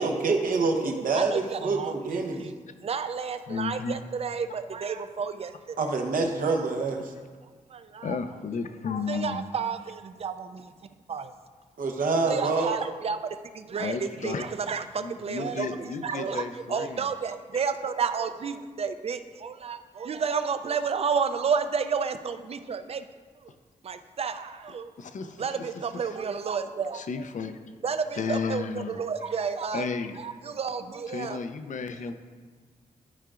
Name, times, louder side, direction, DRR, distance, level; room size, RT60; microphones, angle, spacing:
voice 1, 0.0-2.4 5.8-7.1 11.8-12.8, right 3 dB, 90° right, 2 dB, 0.9 m, -26 dB
voice 2, 0.8-5.8 7.7-8.2 9.1-10.7 11.1-11.3 12.3-23.0 23.4-23.5 23.8-24.9 25.4-27.3 27.8-29.9 30.2-31.4, right 6 dB, 45° right, 10 dB, 0.4 m, -31 dB
voice 3, 3.5-4.0 8.0-9.4 13.8-14.4 15.0-17.1 25.0-25.4 26.9-27.6 28.1-29.0 29.7-30.2 31.1-32.1, left 5 dB, 65° left, 8 dB, 0.5 m, -33 dB
12.0 x 4.8 x 2.5 m, 1.5 s
wide cardioid pair, 100°, 14 cm